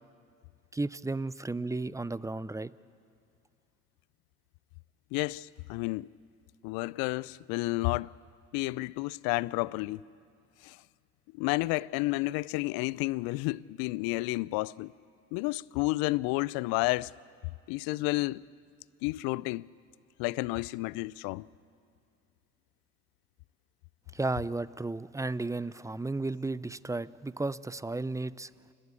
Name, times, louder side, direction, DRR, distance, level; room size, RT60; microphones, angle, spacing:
voice 1, 0.7-2.7 24.1-28.5, right 2 dB, 10° right, 0.5 m, -33 dB
voice 2, 5.1-6.1 6.6-8.1 8.5-10.0 10.6-10.8 11.3-14.9 15.3-17.1 17.7-18.4 19.0-19.7 20.2-21.5, left 22 dB, 70° left, 0.5 m, -31 dB
29.5 x 12.5 x 8.5 m
hypercardioid pair, 65°, 36 cm